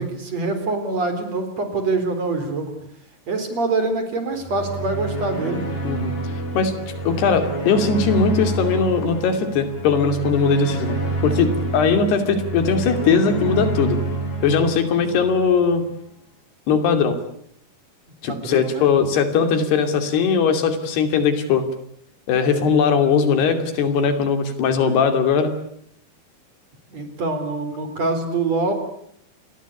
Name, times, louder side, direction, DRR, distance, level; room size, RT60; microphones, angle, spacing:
voice 1, 0.0-2.7 3.3-5.6 18.3-18.9 26.9-28.7, right 3 dB, 40° right, 8 dB, 4.8 m, -25 dB
sound 1, 4.4-15.7, right 2 dB, 60° left, 7.9 m, -28 dB
voice 2, 7.1-11.0 11.2-14.0 14.4-15.9 16.7-17.2 18.2-21.6 22.3-25.5, left 5 dB, 80° left, 8 dB, 4.7 m, -19 dB
29.0 x 21.0 x 8.3 m, 0.69 s
omnidirectional pair, 4.6 m